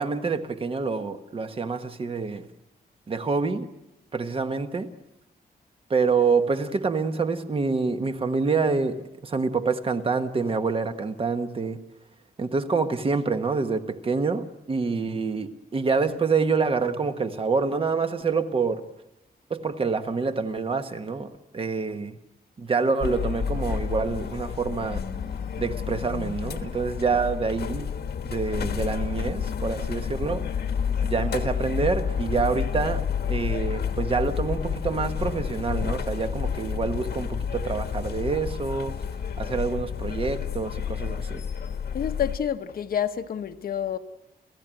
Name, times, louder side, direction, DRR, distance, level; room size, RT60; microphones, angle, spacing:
voice 1, 0.0-2.5 3.1-3.7 4.1-4.9 5.9-11.8 12.4-18.9 19.5-22.2 22.6-25.0 25.6-27.9 28.2-30.5 31.0-39.0 39.4-41.4, right 4 dB, 35° right, 1.3 m, -27 dB
sound 1, 23.0-42.4, left 7 dB, 90° left, 1.4 m, -30 dB
voice 2, 41.9-44.0, left 9 dB, 65° left, 0.9 m, -28 dB
29.5 x 15.5 x 8.9 m
wide cardioid pair, 175°, 16 cm